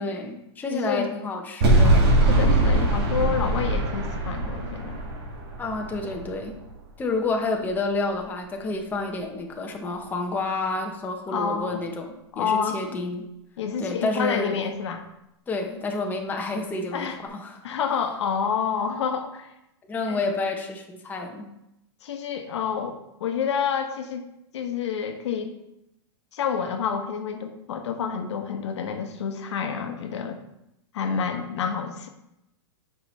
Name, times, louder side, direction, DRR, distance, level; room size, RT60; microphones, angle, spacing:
voice 1, 0.0-2.0 5.6-6.6 7.0-13.3 13.8-14.7 15.5-17.6 19.9-21.5, left 3 dB, 10° left, 1 dB, 0.8 m, -29 dB
voice 2, 0.7-1.1 1.8-2.0 2.3-5.0 11.3-11.8 12.3-12.8 13.6-15.0 16.9-17.2 17.6-19.5 20.1-20.2 22.0-24.2 24.5-25.5 26.3-30.4 30.9-32.1, left 7 dB, 75° left, 5 dB, 1.0 m, -28 dB
sound 1, 1.6-6.8, right 1 dB, 55° right, 2.1 m, -22 dB
8.3 x 5.6 x 3.2 m, 0.84 s
hypercardioid pair, 140°, 15 cm